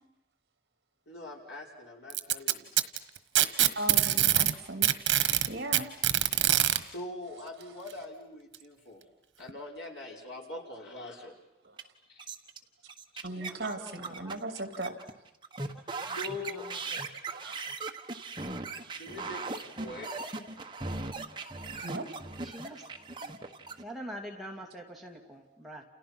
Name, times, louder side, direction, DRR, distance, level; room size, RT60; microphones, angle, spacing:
voice 1, 1.1-2.7 6.9-9.0 9.4-11.3 12.1-12.2 16.0-16.6 18.9-20.3, left 2 dB, 70° left, -1 dB, 5.6 m, -43 dB
Packing tape duct tape, 2.1-4.5 4.8-6.8 7.9-8.0 8.5-8.6 9.5-9.6, right 12 dB, 80° right, 1.3 m, -24 dB
voice 2, 3.8-4.9 5.5-5.9 11.6-11.7 13.2-14.9 17.3-17.5 21.8-22.1, right 2 dB, 60° right, 7 dB, 2.8 m, -37 dB
sound 1, 11.8-11.9 12.2-12.6 12.9-15.1 15.4-23.8, right 3 dB, 25° right, 1.4 m, -39 dB
voice 3, 13.4-14.3 16.1-16.3 16.5-16.8 22.4-22.8 23.2-23.4 23.8-25.8, equal, ahead, 0 dB, 2.5 m, -45 dB
29.5 x 29.5 x 6.1 m, 0.87 s
head